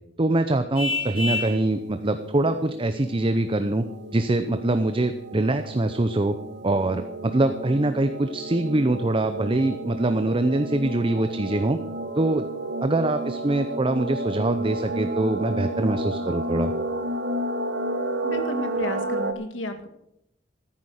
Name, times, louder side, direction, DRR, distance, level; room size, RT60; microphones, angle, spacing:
voice 1, 0.2-3.8 4.1-6.4 6.6-11.8 12.2-12.5 12.8-16.7, right 2 dB, 30° right, 9 dB, 0.7 m, -24 dB
Vehicle horn car horn honking, 0.7-1.6, left 3 dB, 30° left, 3.4 m, -27 dB
sound 1, 1.0-19.3, right 2 dB, 60° right, 1.2 m, -32 dB
voice 2, 18.2-19.9, left 1 dB, 85° left, 7 dB, 1.9 m, -32 dB
14.0 x 9.6 x 6.5 m, 0.80 s
head